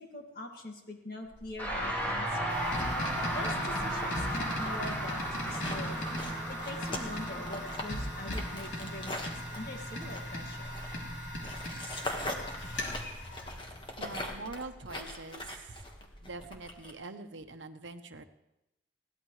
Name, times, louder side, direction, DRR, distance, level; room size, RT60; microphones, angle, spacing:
voice 1, 0.0-2.6 3.3-6.1 6.5-9.2 9.5-10.8, left 1 dB, 50° left, 2 dB, 2.1 m, -43 dB
sound 1, 1.3-16.9, left 1 dB, 25° left, 1.6 m, -43 dB
sound 2, 1.6-11.1, right 1 dB, 10° left, 3.1 m, -36 dB
sound 3, 2.5-14.3, left 1 dB, 85° left, 3.6 m, -39 dB
voice 2, 14.0-15.5 16.2-18.2, right 3 dB, 85° right, 8 dB, 1.0 m, -44 dB
21.5 x 16.5 x 3.3 m, 0.91 s
head